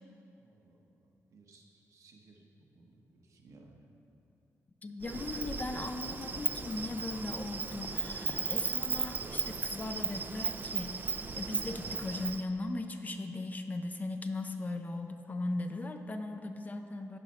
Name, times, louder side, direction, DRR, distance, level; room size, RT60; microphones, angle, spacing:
voice 1, 0.4-0.9 1.3-2.5 2.7-3.8, right 3 dB, 65° right, 1 dB, 1.0 m, -60 dB
voice 2, 4.8-17.2, left 2 dB, 30° left, 6 dB, 0.5 m, -38 dB
Insect, 5.0-12.4, right 4 dB, 35° right, 0.4 m, -36 dB
sound 1, 7.7-8.5 8.8-9.2 9.4-9.6 12.6-12.7 12.9-13.2 13.4-13.6, left 3 dB, 85° left, 0.7 m, -51 dB
10.5 x 5.3 x 4.3 m, 2.8 s
cardioid pair, 105°, 6 cm